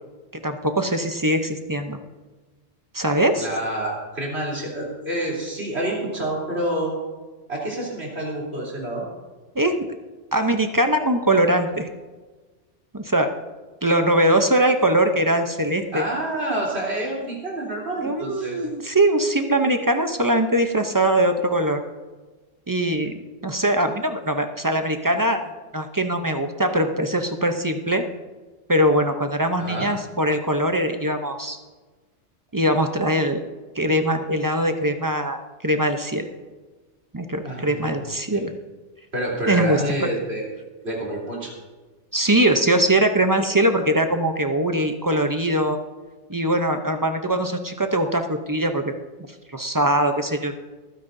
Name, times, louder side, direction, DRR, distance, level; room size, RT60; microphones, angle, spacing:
voice 1, 0.3-2.0 2.9-3.5 9.6-9.9 10.3-11.9 12.9-13.3 13.8-16.0 18.0-21.8 22.7-23.1 23.4-25.4 25.7-28.0 28.7-31.6 32.5-33.4 33.8-35.4 35.6-36.3 37.1-38.5 39.5-39.8 42.1-45.8 46.3-48.8 49.5-50.6, right 1 dB, 20° right, 6 dB, 0.6 m, -21 dB
voice 2, 3.4-6.9 7.5-9.0 15.9-18.7 29.6-29.9 37.4-38.0 38.3-38.4 39.1-40.4 40.8-41.5, right 1 dB, 60° right, -4 dB, 3.7 m, -28 dB
26.5 x 9.6 x 2.7 m, 1.3 s
omnidirectional pair, 1.2 m